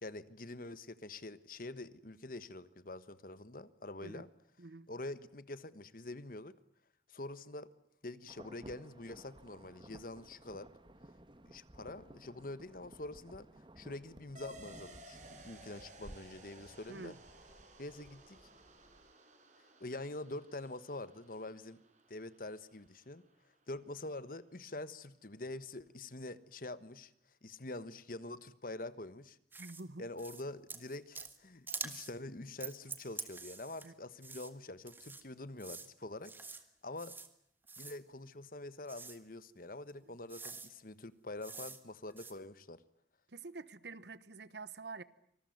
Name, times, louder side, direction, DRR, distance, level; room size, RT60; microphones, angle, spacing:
voice 1, 0.0-4.3 4.9-6.6 7.1-7.7 8.0-10.7 11.5-13.5 13.8-17.2 17.8-18.4 19.8-21.8 22.1-23.2 23.7-27.1 27.4-29.4 30.0-36.3 36.8-37.1 37.8-42.8, left 2 dB, 50° left, 1.3 m, -45 dB
voice 2, 4.6-4.9 16.9-17.2 29.6-30.1 33.8-33.9 40.1-40.2 43.3-45.0, right 3 dB, 75° right, 1.2 m, -47 dB
Insect / Thunder / Rain, 8.3-19.1, right 1 dB, 30° right, 1.4 m, -57 dB
sound 1, 14.4-23.4, right 1 dB, 45° right, 5.5 m, -58 dB
sound 2, 29.5-29.8 30.2-30.4 30.7-31.4 31.7-32.1 32.6-33.9 34.2-34.5 34.9-35.2 35.6-35.9 36.2-36.6 37.0-37.3 37.7-38.0 38.9-39.2 39.9-40.0 40.3-40.7 41.4-41.8 42.1-42.3, right 4 dB, 10° right, 1.8 m, -46 dB
26.0 x 20.5 x 9.3 m
head